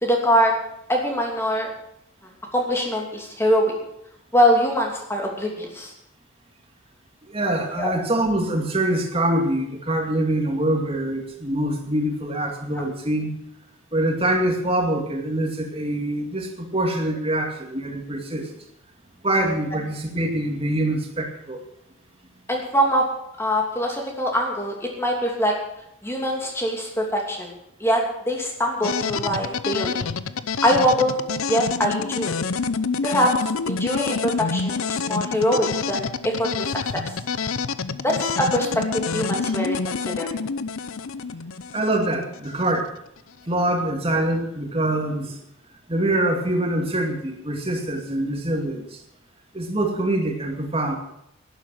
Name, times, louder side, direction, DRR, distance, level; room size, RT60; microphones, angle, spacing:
voice 1, 0.0-0.5 0.9-1.7 2.5-3.7 4.3-5.9 7.8-8.0 12.8-12.9 22.5-23.1 23.4-25.5 26.0-27.5 27.8-30.0 30.6-31.2 31.5-32.4 33.0-37.0 38.0-40.3, equal, 10° left, 1 dB, 2.8 m, -23 dB
voice 2, 7.2-13.3 13.9-18.5 19.2-21.6 41.7-42.9 43.5-45.4 45.9-49.0 49.5-51.0, right 1 dB, 25° right, 2 dB, 2.3 m, -24 dB
sound 1, 28.8-42.7, left 5 dB, 80° left, 0.7 m, -27 dB
11.5 x 11.5 x 7.6 m, 0.78 s
head